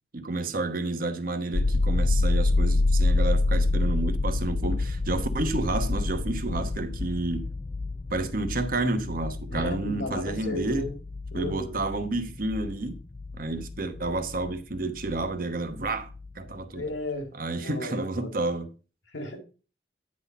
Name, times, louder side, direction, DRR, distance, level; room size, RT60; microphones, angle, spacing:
voice 1, 0.1-7.5 8.1-10.9 11.3-13.0 13.4-16.1 16.3-16.8 17.4-18.7, right 2 dB, 50° right, 1.0 m, -30 dB
sound 1, 1.5-15.3 15.7-16.6, left 2 dB, 25° left, 0.4 m, -28 dB
voice 2, 9.5-10.9 11.3-11.8 16.7-17.3 17.6-18.3 19.1-19.4, left 2 dB, 85° left, 1.9 m, -34 dB
9.8 x 4.2 x 5.4 m
head